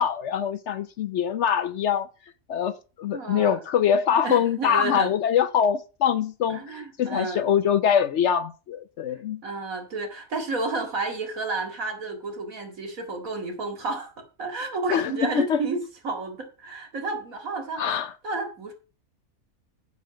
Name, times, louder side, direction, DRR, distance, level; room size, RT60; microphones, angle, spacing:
voice 1, 0.0-2.1 2.5-9.4 14.9-15.6 17.8-18.1, left 8 dB, 65° left, 0.8 m, -24 dB
voice 2, 3.1-3.6 4.2-5.1 6.5-7.5 9.4-14.1 14.4-17.8 18.2-18.7, right 3 dB, 75° right, 2.5 m, -31 dB
8.3 x 6.6 x 6.0 m
omnidirectional pair, 1.5 m